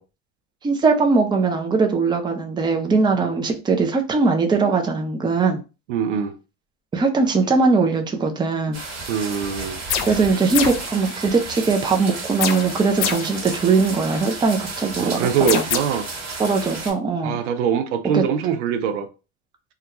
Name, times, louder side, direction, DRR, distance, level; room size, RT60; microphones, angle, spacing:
voice 1, 0.6-5.6 6.9-8.8 10.1-15.6 16.4-17.4 18.1-18.2, right 4 dB, 15° right, 0.5 m, -20 dB
voice 2, 5.9-6.4 9.1-9.8 15.0-16.1 17.2-19.1, right 7 dB, 85° right, 0.6 m, -23 dB
sound 1, 8.7-16.9, right 3 dB, 50° right, 1.3 m, -33 dB
sound 2, 9.9-10.3 10.5-10.9 12.4-13.4 15.5-15.8, left 8 dB, 85° left, 0.5 m, -25 dB
2.4 x 2.2 x 2.8 m
supercardioid pair, 95°, 35 cm